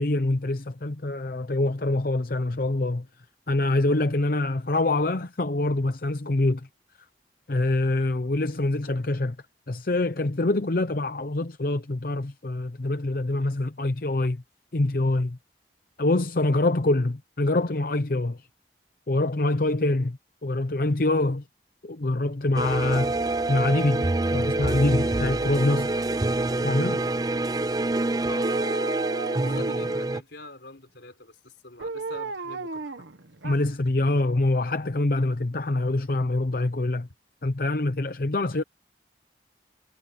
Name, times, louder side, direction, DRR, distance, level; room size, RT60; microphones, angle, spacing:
voice 1, 0.0-3.1 3.5-6.6 7.5-9.4 9.7-14.4 14.7-15.4 16.0-18.5 19.1-21.4 21.8-23.1 23.5-26.0 26.6-27.0 33.4-37.1 37.4-38.6, left 2 dB, 50° left, 0.7 m, -25 dB
sound 1, 22.5-30.2, right 2 dB, 20° right, 0.4 m, -26 dB
Dog, 24.6-26.7 28.4-30.1 31.8-33.9 34.3-34.4, right 3 dB, 85° right, 1.5 m, -37 dB
voice 2, 28.3-28.7 29.4-33.1 33.5-33.6, left 2 dB, 70° left, 3.8 m, -45 dB
head